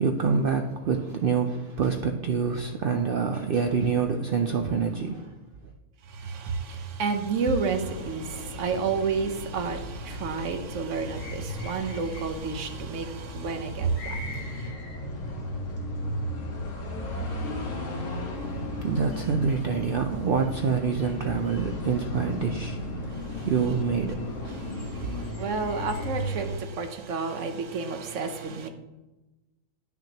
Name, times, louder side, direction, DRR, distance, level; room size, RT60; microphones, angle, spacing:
voice 1, 0.0-5.4 18.3-24.7 25.0-25.3, right 5 dB, 85° right, 0.4 m, -27 dB
voice 2, 6.1-14.7 23.4-23.5 24.7-28.7, right 5 dB, 60° right, 1.0 m, -30 dB
sound 1, 7.7-26.6, left 1 dB, 60° left, 1.5 m, -35 dB
10.5 x 5.9 x 2.8 m
omnidirectional pair, 1.5 m